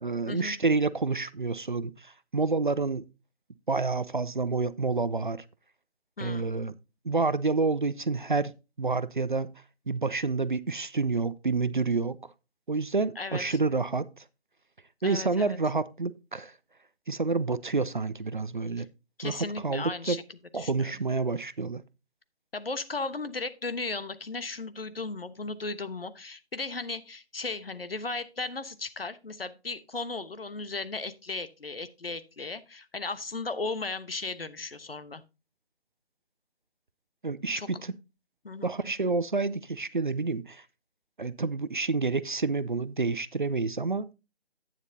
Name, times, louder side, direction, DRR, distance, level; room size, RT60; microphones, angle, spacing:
voice 1, 0.0-3.0 3.7-5.4 6.2-6.7 7.0-8.5 8.8-9.5 9.9-12.2 12.7-14.2 15.0-16.5 17.1-18.9 19.2-19.4 19.6-20.2 20.5-21.8 37.2-37.9 38.6-40.6 41.2-44.1, right 3 dB, 50° right, 0.5 m, -28 dB
voice 2, 6.2-6.5 13.2-13.6 15.0-15.6 18.8-18.9 19.2-20.2 20.5-20.9 22.5-35.2 37.5-37.7 38.4-38.7, left 3 dB, 60° left, 1.1 m, -36 dB
11.0 x 9.4 x 2.7 m
figure-of-eight pair, 155°, 33 cm